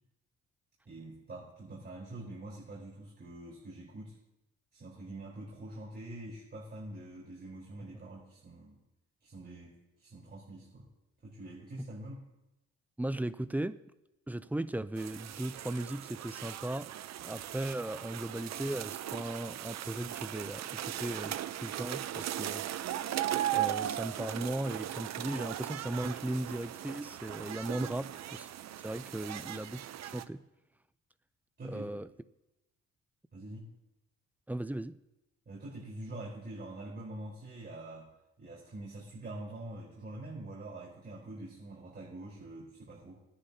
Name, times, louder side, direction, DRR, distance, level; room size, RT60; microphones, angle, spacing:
voice 1, 0.9-4.2 4.7-8.8 9.2-10.9 11.2-12.2 27.8-27.9 29.3-29.5 31.6-31.9 33.3-33.7 35.5-38.1 38.4-43.1, right 1 dB, 35° right, 3.9 m, -45 dB
voice 2, 13.0-13.8 14.3-16.9 17.2-22.6 23.5-28.5 28.8-30.4 31.6-32.1 34.5-35.0, right 1 dB, 5° right, 0.4 m, -37 dB
sound 1, 15.0-30.2, right 12 dB, 60° right, 0.6 m, -38 dB
22.0 x 10.0 x 2.8 m
cardioid pair, 90°, 30 cm